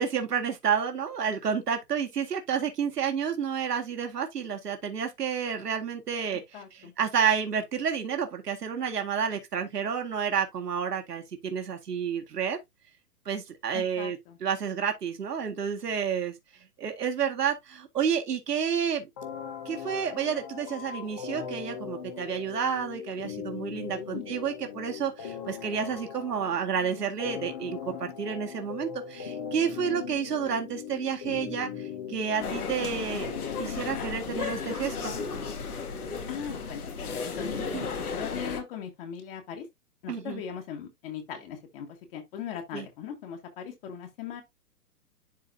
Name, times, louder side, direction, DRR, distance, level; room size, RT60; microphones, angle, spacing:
voice 1, 0.0-12.6 13.3-16.3 16.8-19.1 19.7-33.3 33.6-35.1 37.7-37.9 40.1-40.4 42.7-42.9, right 7 dB, 80° right, 1.9 m, -30 dB
voice 2, 6.5-6.9 13.7-14.4 24.1-24.3 36.3-36.8 37.1-37.5 38.1-39.6 40.0-44.4, left 8 dB, 35° left, 1.8 m, -39 dB
sound 1, 19.2-35.2, left 7 dB, 10° left, 0.4 m, -40 dB
sound 2, 32.4-38.6, left 5 dB, 70° left, 2.1 m, -34 dB
11.5 x 3.9 x 2.7 m
hypercardioid pair, 135°, 47 cm